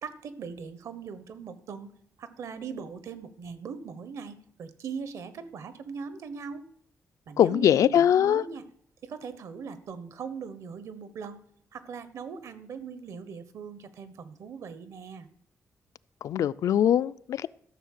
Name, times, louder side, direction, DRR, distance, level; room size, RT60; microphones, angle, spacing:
voice 1, 0.0-6.6 7.3-8.6 9.0-11.4 11.7-15.3, right 6 dB, 65° right, 1.1 m, -40 dB
voice 2, 7.4-8.5 16.2-17.5, left 10 dB, 75° left, 0.4 m, -22 dB
13.5 x 6.9 x 6.6 m
wide cardioid pair, 180°, 6 cm